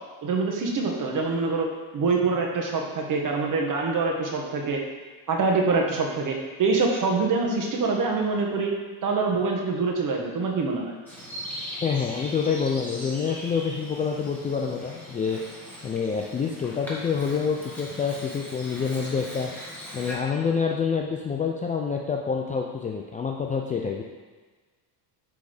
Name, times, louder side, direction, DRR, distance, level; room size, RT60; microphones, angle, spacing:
voice 1, 0.2-1.7 1.9-4.8 5.3-8.7 9.0-10.9, right 4 dB, 45° right, 1 dB, 1.2 m, -25 dB
Bird vocalization bird call bird song, 11.1-20.1, equal, 5° left, 1.8 m, -40 dB
voice 2, 11.8-15.4 15.8-19.5 19.9-24.0, left 6 dB, 20° left, 0 dB, 0.3 m, -27 dB
6.2 x 3.6 x 4.9 m, 1.4 s
cardioid pair, 105°, 45 cm